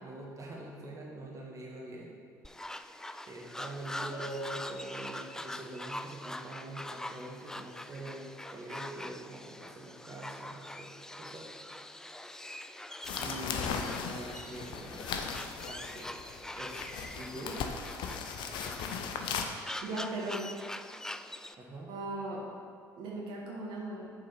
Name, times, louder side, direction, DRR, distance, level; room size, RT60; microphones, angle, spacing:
voice 1, 0.0-2.1 2.7-2.8 3.3-11.5 13.2-15.2 15.7-16.2 16.5-17.6 21.6-21.9, right 1 dB, 35° right, -3 dB, 1.4 m, -45 dB
sound 1, 2.4-21.5, left 1 dB, 5° left, 0.3 m, -44 dB
Bell, 4.1-5.7, right 1 dB, 90° left, 1.7 m, -44 dB
sound 2, 13.0-19.5, left 6 dB, 60° left, 0.6 m, -37 dB
voice 2, 19.8-20.4 21.9-22.4 23.0-24.1, right 2 dB, 65° right, -4 dB, 1.4 m, -37 dB
6.6 x 4.0 x 5.8 m, 2.3 s
hypercardioid pair, 55°, 9 cm